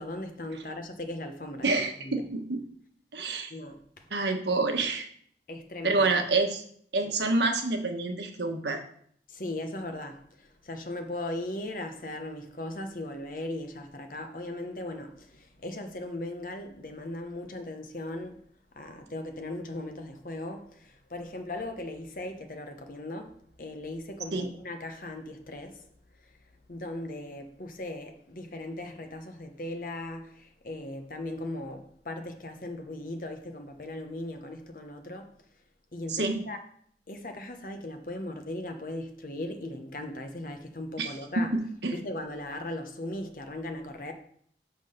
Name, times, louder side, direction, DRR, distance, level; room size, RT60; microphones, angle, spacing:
voice 1, 0.0-2.3 3.5-4.0 5.5-6.1 9.3-18.4 18.8-25.8 26.7-35.3 35.9-36.6 37.1-41.5 41.9-44.1, left 1 dB, 50° left, 1.0 m, -38 dB
voice 2, 1.6-2.6 3.1-3.5 4.1-5.1 5.8-6.6 6.9-8.8 24.3-24.5 36.1-36.4 41.0-41.1 41.5-41.9, right 3 dB, 80° right, 1.2 m, -27 dB
6.1 x 5.5 x 6.5 m
head